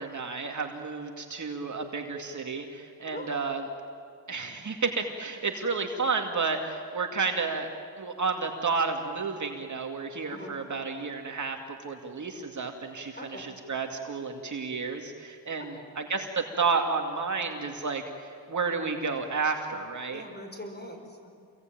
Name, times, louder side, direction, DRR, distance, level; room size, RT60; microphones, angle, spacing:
voice 1, 0.0-3.6 4.3-7.7 8.0-20.2, right 4 dB, 40° right, 3 dB, 2.4 m, -31 dB
voice 2, 13.2-13.5 15.6-15.9 20.1-21.3, left 1 dB, 20° left, 3 dB, 6.3 m, -42 dB
28.0 x 21.5 x 9.2 m, 2.3 s
cardioid pair, 80°, 45 cm